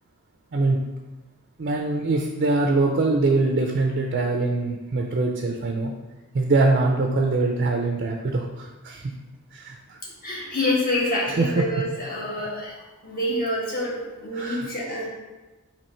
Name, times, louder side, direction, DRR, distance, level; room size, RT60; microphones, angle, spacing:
voice 1, 1.6-5.9 6.3-9.1 9.5-10.0 11.4-11.6 14.3-14.7, right 3 dB, 45° right, 2 dB, 0.4 m, -23 dB
voice 2, 10.0-12.7 13.0-15.1, left 1 dB, 40° left, -5 dB, 1.2 m, -27 dB
4.2 x 2.9 x 4.3 m, 1.2 s
head